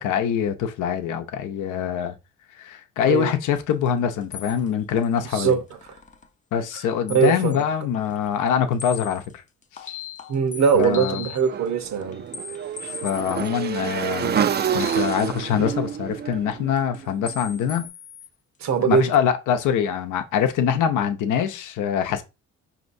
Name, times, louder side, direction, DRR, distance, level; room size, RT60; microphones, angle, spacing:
voice 1, 0.0-2.1 2.5-5.6 6.5-9.2 9.7-10.0 10.7-11.2 12.8-14.4 14.7-17.9 18.8-22.2, left 8 dB, 80° left, 0.7 m, -24 dB
sound 1, 4.3-6.3 7.1-7.6 7.9-9.3 9.6-11.5 11.8-15.9 16.3-17.0 17.3-18.3, left 7 dB, 25° left, 0.4 m, -39 dB
voice 2, 5.3-5.6 7.1-7.6 10.3-12.2 12.8-12.9 18.6-19.1, right 6 dB, 65° right, 0.9 m, -21 dB
Motorcycle / Engine, 11.4-17.6, right 9 dB, 35° right, 0.4 m, -28 dB
5.2 x 2.8 x 2.6 m
cardioid pair, 90°, 30 cm